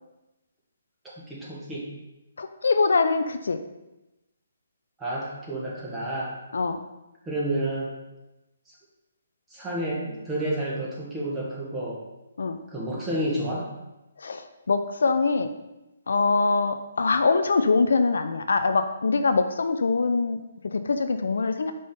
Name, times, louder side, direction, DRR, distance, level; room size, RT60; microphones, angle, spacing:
voice 1, 1.2-1.9 5.0-6.3 7.2-7.9 8.7-8.8 9.5-12.0 12.7-13.7, right 1 dB, 10° right, -6 dB, 1.6 m, -30 dB
voice 2, 2.4-3.6 6.5-6.8 12.4-12.6 14.2-15.5 16.1-21.7, left 4 dB, 75° left, 9 dB, 0.4 m, -23 dB
5.3 x 3.4 x 5.3 m, 0.98 s
hypercardioid pair, 145°, 0 cm